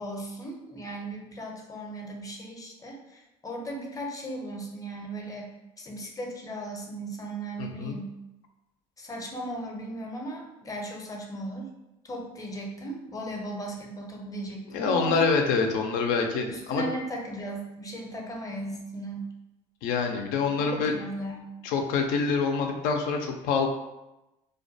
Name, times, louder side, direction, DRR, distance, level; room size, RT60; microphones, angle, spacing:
voice 1, 0.0-8.2 9.0-11.7 12.0-15.3 16.5-19.3 20.5-21.5, right 1 dB, 25° left, 0 dB, 0.6 m, -37 dB
voice 2, 7.6-8.0 14.7-16.8 19.8-20.9 21.6-23.7, left 5 dB, 75° left, 3 dB, 0.4 m, -26 dB
2.3 x 2.2 x 2.6 m, 0.96 s
supercardioid pair, 75°, 15 cm